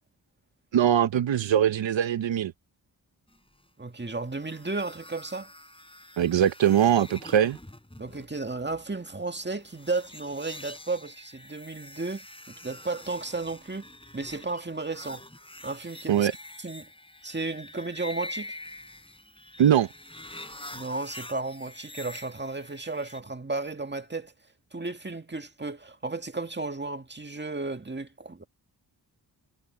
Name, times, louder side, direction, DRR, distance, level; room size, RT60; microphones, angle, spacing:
voice 1, 0.7-2.5 6.2-7.6 16.1-16.3 19.6-19.9, right 10 dB, 90° right, 0.9 m, -22 dB
voice 2, 3.8-5.5 8.0-13.8 14.1-15.3 15.6-16.3 16.6-16.9 17.2-18.6 20.7-24.3 24.7-28.4, right 3 dB, 25° right, 2.0 m, -34 dB
sound 1, 4.4-23.2, left 1 dB, 10° left, 4.5 m, -45 dB
cardioid pair, 50°, 44 cm